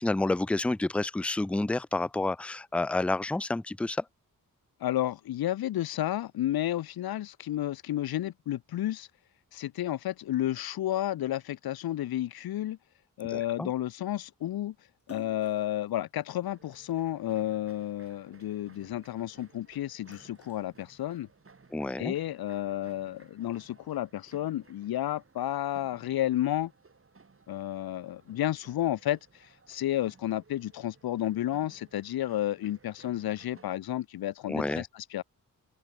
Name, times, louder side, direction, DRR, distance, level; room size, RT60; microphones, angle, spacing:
voice 1, 0.0-4.0 13.2-13.7 21.7-22.1 34.5-34.8, left 2 dB, 5° left, 0.4 m, -29 dB
voice 2, 4.8-9.1 9.5-12.8 13.2-14.7 15.1-21.3 22.0-26.7 27.5-35.2, left 13 dB, 85° left, 0.5 m, -31 dB
Splash splatter, 15.0-17.5 18.0-19.5 19.8-21.5, left 4 dB, 40° left, 5.8 m, -54 dB
sound 1, 16.4-33.8, right 4 dB, 35° right, 4.6 m, -59 dB
open air
wide cardioid pair, 140°, 36 cm